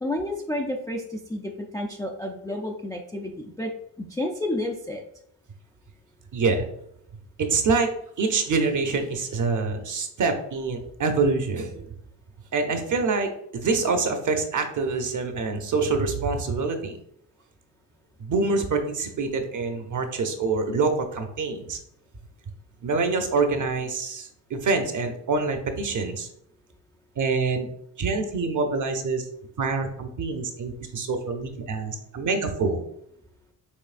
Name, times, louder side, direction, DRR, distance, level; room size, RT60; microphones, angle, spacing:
voice 1, 0.0-3.7 4.0-5.0, left 1 dB, 10° left, 1 dB, 0.3 m, -30 dB
voice 2, 6.3-6.7 7.4-11.9 12.5-17.0 18.2-21.8 22.8-26.3 27.2-27.7 28.0-29.3 29.6-32.8, right 4 dB, 45° right, 6 dB, 0.7 m, -26 dB
6.3 x 3.1 x 2.5 m, 0.73 s
cardioid pair, 120°, 44 cm